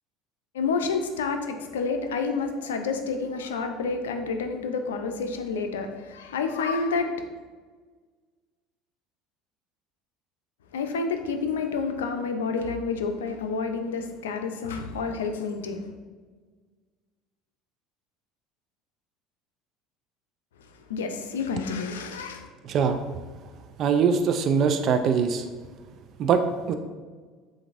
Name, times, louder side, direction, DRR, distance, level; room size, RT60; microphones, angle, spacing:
voice 1, 0.5-7.1 10.7-15.8 20.9-22.5, left 4 dB, 85° left, 6 dB, 0.4 m, -29 dB
voice 2, 22.6-23.0 23.8-25.4 26.2-26.7, right 6 dB, 50° right, 7 dB, 0.4 m, -22 dB
7.4 x 2.6 x 2.5 m, 1.5 s
hypercardioid pair, 75°, 0 cm